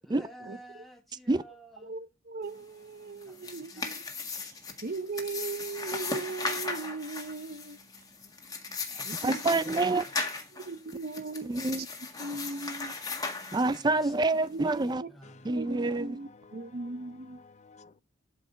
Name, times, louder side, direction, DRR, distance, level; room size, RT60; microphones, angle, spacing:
voice 1, 0.0-1.9 3.2-3.9 8.9-10.0 10.3-10.5 13.9-14.1 14.6-15.7 16.5-16.6, equal, ahead, 1.5 m, -52 dB
voice 2, 1.8-4.0 4.4-4.5 4.8-7.8 9.0-9.4 9.8-9.9 10.5-11.5 12.2-12.9 14.5-15.1 15.5-17.4, right 3 dB, 50° right, 0.8 m, -38 dB
sound 1, 3.2-14.1, left 3 dB, 20° left, 1.6 m, -37 dB
voice 3, 9.2-10.1 11.4-11.9 13.5-15.0 15.4-16.2, right 2 dB, 20° right, 0.4 m, -27 dB
voice 4, 15.2-18.0, left 4 dB, 35° left, 0.5 m, -55 dB
12.0 x 5.0 x 5.3 m
head